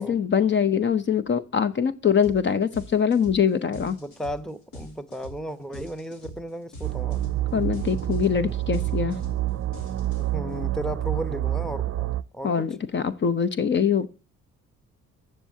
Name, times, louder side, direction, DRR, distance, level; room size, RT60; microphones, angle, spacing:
voice 1, 0.0-4.0 7.5-9.2 12.4-14.1, left 7 dB, 40° left, 0.7 m, -23 dB
sound 1, 2.2-2.4 2.7-10.5, equal, 75° left, 3.2 m, -43 dB
voice 2, 3.7-7.2 10.3-12.7, equal, ahead, 0.8 m, -35 dB
sound 2, 6.8-12.2, right 14 dB, 50° right, 0.6 m, -28 dB
13.5 x 7.3 x 2.8 m
cardioid pair, 90°, 30 cm